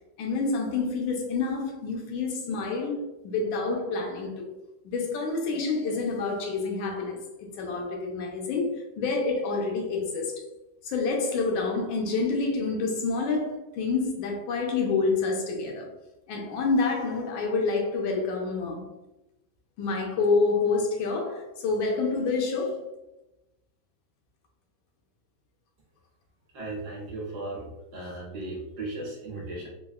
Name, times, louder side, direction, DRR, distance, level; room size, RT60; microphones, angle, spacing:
voice 1, 0.2-4.5 4.8-7.2 7.5-10.4 10.8-15.9 16.3-18.9 19.8-22.9, left 4 dB, 85° left, 1.4 m, -28 dB
voice 2, 26.5-29.7, right 2 dB, 65° right, 1.3 m, -36 dB
3.8 x 2.0 x 2.2 m
omnidirectional pair, 2.1 m